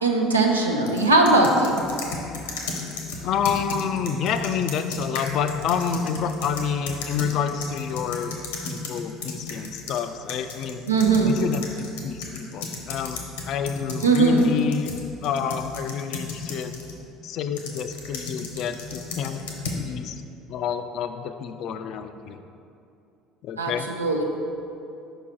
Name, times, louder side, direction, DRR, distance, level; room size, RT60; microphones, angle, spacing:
voice 1, 0.0-1.8 10.9-11.3 14.0-14.4 23.6-23.7 24.0-24.2, right 3 dB, 85° right, 1 dB, 0.5 m, -19 dB
sound 1, 0.9-10.0 10.3-17.0 17.6-19.8, left 4 dB, 75° left, 0.7 m, -35 dB
voice 2, 3.2-8.4 8.6-10.8 11.2-14.9 15.2-16.8 17.2-19.4 19.8-20.2 20.5-22.4 23.4-23.9, left 7 dB, 55° left, 8 dB, 0.3 m, -28 dB
5.1 x 4.8 x 4.4 m, 2.6 s
figure-of-eight pair, 60°, 0 cm